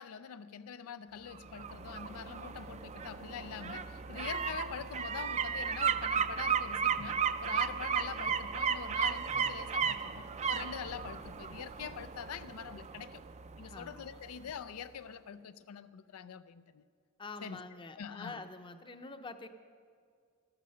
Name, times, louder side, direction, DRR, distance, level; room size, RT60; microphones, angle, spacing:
voice 1, 0.0-13.2 13.6-16.8 17.4-17.6 18.0-18.4, left 7 dB, 90° left, 0.4 m, -44 dB
sound 1, 1.3-14.1 14.5-14.6, right 7 dB, 30° right, 0.4 m, -35 dB
voice 2, 13.6-14.2 17.2-19.5, left 3 dB, 25° left, 0.6 m, -46 dB
13.0 x 12.5 x 5.5 m
head